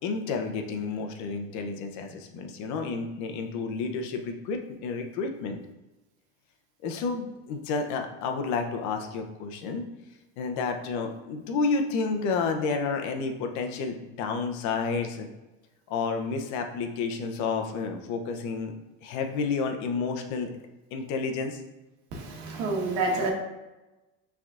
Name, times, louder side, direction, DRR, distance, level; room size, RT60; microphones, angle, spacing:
voice 1, 0.0-5.6 6.8-9.9 10.4-15.3 15.9-18.8 19.0-20.5 20.9-21.6, left 4 dB, 60° left, 5 dB, 0.7 m, -30 dB
voice 2, 22.1-23.3, right 3 dB, 65° right, 0 dB, 1.4 m, -28 dB
6.0 x 3.5 x 2.5 m, 1.1 s
supercardioid pair, 135°, 32 cm